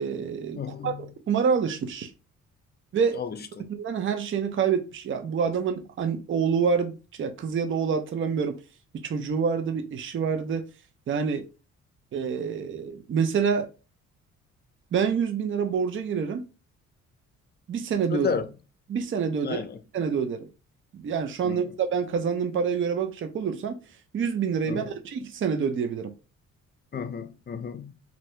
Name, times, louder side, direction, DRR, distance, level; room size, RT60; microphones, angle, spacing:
voice 1, 0.0-2.1 2.9-3.2 3.7-8.5 9.0-10.6 11.1-11.4 12.1-13.7 14.9-16.4 17.7-18.3 18.9-19.6 19.9-20.5 20.9-23.8 24.1-26.1, right 6 dB, 40° right, 0.6 m, -27 dB
voice 2, 0.6-1.1 3.1-3.7 18.1-18.5 19.4-19.8 21.4-21.6 24.6-24.9 26.9-27.9, left 6 dB, 35° left, 0.6 m, -32 dB
2.7 x 2.6 x 3.2 m
cardioid pair, 90°, 30 cm